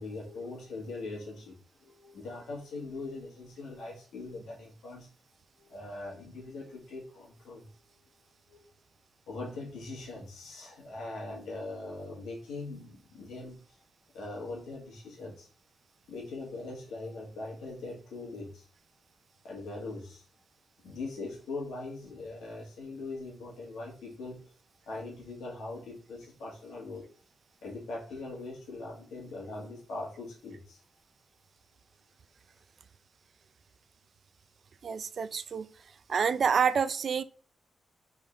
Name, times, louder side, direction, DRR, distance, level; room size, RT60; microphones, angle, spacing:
voice 1, 0.0-5.1 5.6-7.7 8.5-8.6 9.3-13.6 14.1-15.5 16.1-18.6 19.4-20.2 20.8-24.5 24.9-27.1 27.6-30.8, left 2 dB, 90° left, 1.7 m, -41 dB
voice 2, 34.8-35.7 36.1-37.2, right 6 dB, 60° right, 0.4 m, -27 dB
3.8 x 3.6 x 3.7 m
cardioid pair, 80°, 0 cm